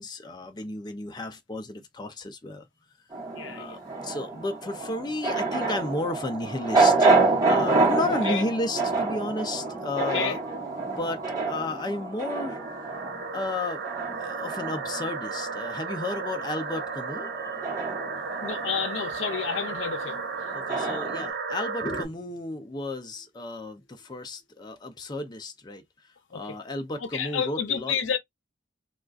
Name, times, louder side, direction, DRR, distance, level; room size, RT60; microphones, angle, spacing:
voice 1, 0.0-2.7 3.5-10.4 11.0-11.2 11.5-12.6 13.3-13.8 14.2-17.3 20.5-25.8 26.3-27.9, left 2 dB, 20° left, 0.4 m, -33 dB
sound 1, 3.1-15.7 16.0-21.3, right 3 dB, 20° right, 1.1 m, -28 dB
voice 2, 3.3-3.8 8.2-8.4 10.0-10.4 18.4-20.3 20.7-21.1 26.3-26.4 27.0-28.2, left 7 dB, 80° left, 0.6 m, -30 dB
sound 2, 4.4-22.0, right 4 dB, 55° right, 0.7 m, -36 dB
3.5 x 2.3 x 2.3 m
head